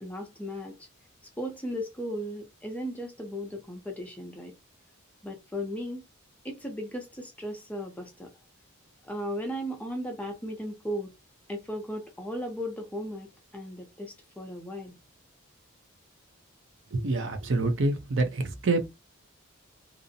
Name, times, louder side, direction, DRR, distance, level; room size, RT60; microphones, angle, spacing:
voice 1, 0.0-0.9 1.4-4.5 5.2-6.0 6.4-8.3 9.0-11.1 11.5-15.0, equal, 5° left, 0.5 m, -36 dB
voice 2, 16.9-18.9, right 2 dB, 55° right, 0.5 m, -27 dB
2.5 x 2.0 x 2.6 m
head